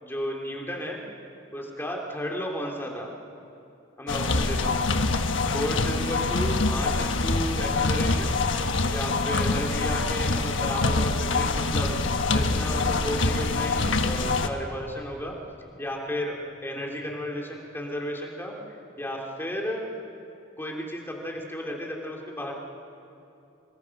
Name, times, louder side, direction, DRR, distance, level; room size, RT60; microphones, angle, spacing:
voice 1, 0.0-1.0 1.5-3.1 4.0-4.9 5.5-8.4 8.9-12.0 12.3-15.4 15.8-18.6 19.0-19.9 20.6-22.5, equal, 10° left, -1 dB, 3.2 m, -33 dB
sound 1, 4.1-14.5, left 3 dB, 90° left, 1.3 m, -25 dB
28.0 x 22.0 x 6.1 m, 2.8 s
head